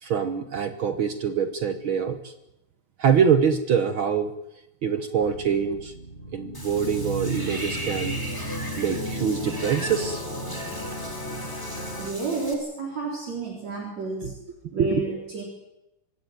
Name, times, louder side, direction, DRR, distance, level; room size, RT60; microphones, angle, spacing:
voice 1, 0.0-2.3 3.0-4.3 4.8-5.9 6.3-8.2 8.8-10.2 14.2-14.3 14.7-15.0, right 7 dB, 70° right, 9 dB, 1.2 m, -24 dB
sound 1, 5.2-12.1, equal, 55° left, 5.9 m, -34 dB
Water / Bathtub (filling or washing), 6.5-12.5, equal, 5° left, 3.2 m, -37 dB
voice 2, 11.8-14.3 14.7-15.4, right 3 dB, 50° right, -1 dB, 4.9 m, -31 dB
25.0 x 14.5 x 9.4 m, 0.90 s
omnidirectional pair, 4.0 m